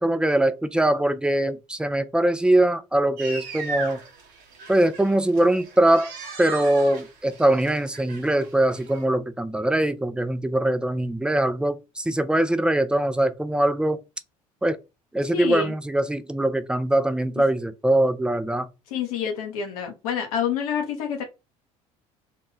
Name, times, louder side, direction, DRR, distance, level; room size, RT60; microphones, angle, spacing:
voice 1, 0.0-4.0 4.7-6.1 6.4-14.0 14.6-14.8 15.1-18.7, right 1 dB, 5° right, 0.4 m, -22 dB
sound 1, 3.2-9.1, right 4 dB, 60° right, 0.9 m, -38 dB
voice 2, 15.2-15.7 18.9-21.2, left 7 dB, 80° left, 0.6 m, -27 dB
2.2 x 2.1 x 3.0 m
hypercardioid pair, 65°, 18 cm